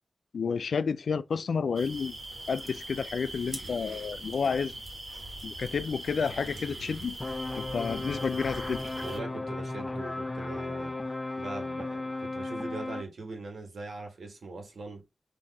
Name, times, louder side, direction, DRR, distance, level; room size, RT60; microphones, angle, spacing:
voice 1, 0.3-2.2 2.5-4.8 5.4-7.2 7.6-8.8, left 5 dB, 90° left, 0.3 m, -30 dB
sound 1, 1.7-9.2, right 1 dB, 50° right, 1.4 m, -41 dB
sound 2, 7.2-13.0, left 2 dB, 25° left, 0.7 m, -35 dB
voice 2, 9.0-10.9 11.4-15.0, right 3 dB, 80° right, 1.4 m, -41 dB
4.4 x 2.8 x 4.1 m
wide cardioid pair, 85°, 0 cm